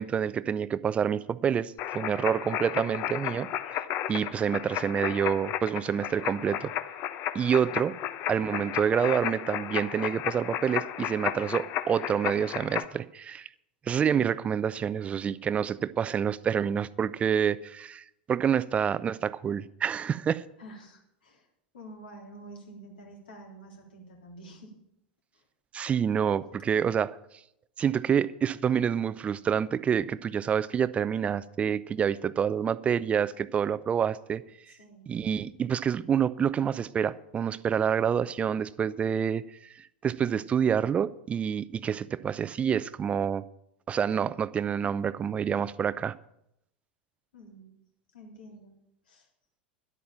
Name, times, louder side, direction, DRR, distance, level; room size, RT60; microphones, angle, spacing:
voice 1, 0.0-3.8 4.1-6.7 7.3-7.9 8.3-13.5 13.9-20.4 25.7-27.2 27.8-34.4 35.1-39.4 39.7-43.4 43.9-46.1, right 8 dB, 25° right, 0.5 m, -27 dB
sound 1, 1.8-12.9, left 11 dB, 45° left, 0.9 m, -33 dB
voice 2, 20.6-21.5 21.7-24.8 25.3-25.4 34.7-35.1 47.3-47.8 48.1-48.7 49.1-49.3, right 1 dB, 75° left, 3.6 m, -48 dB
11.5 x 8.6 x 7.2 m
figure-of-eight pair, 90°, 5 cm